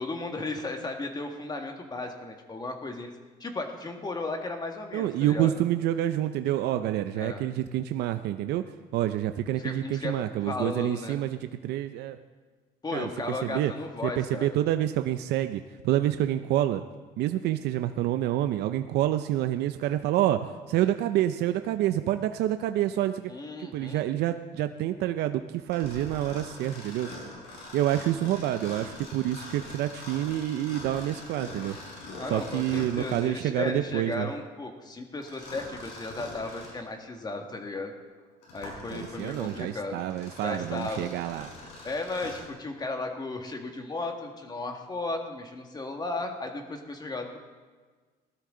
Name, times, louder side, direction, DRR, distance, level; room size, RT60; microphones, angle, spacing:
voice 1, 0.0-3.1 3.4-5.5 7.1-7.4 9.6-11.2 12.8-14.6 23.3-24.1 32.1-37.9 38.5-40.0 40.4-41.1 41.8-47.4, left 2 dB, 25° left, 4 dB, 2.0 m, -35 dB
voice 2, 4.9-8.6 8.9-12.2 12.9-13.1 13.4-13.7 14.2-16.8 17.2-20.4 20.7-23.3 23.6-27.1 27.7-31.8 32.3-34.3 38.9-41.5, right 13 dB, 80° right, 9 dB, 0.6 m, -28 dB
Mechanisms, 25.7-33.4 35.2-36.8 37.4-37.5 38.2-42.5, left 2 dB, 80° left, 5.1 m, -43 dB
18.5 x 12.5 x 3.9 m, 1.4 s
cardioid pair, 110°, 17 cm